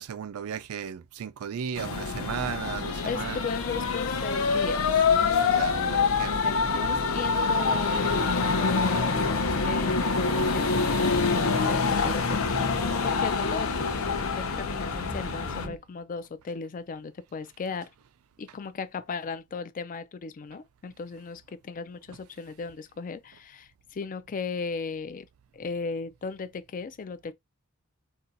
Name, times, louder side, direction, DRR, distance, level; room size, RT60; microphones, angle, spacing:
voice 1, 0.0-3.4 5.4-6.4 22.1-22.2, right 7 dB, 90° right, 0.4 m, -35 dB
sound 1, 1.8-15.7, left 4 dB, 75° left, 0.7 m, -26 dB
voice 2, 3.0-5.1 5.8-6.1 6.4-17.9 18.4-25.3 25.5-27.3, left 5 dB, 40° left, 0.4 m, -36 dB
sound 2, 8.0-15.8, right 2 dB, 25° right, 0.5 m, -41 dB
2.7 x 2.3 x 3.9 m
head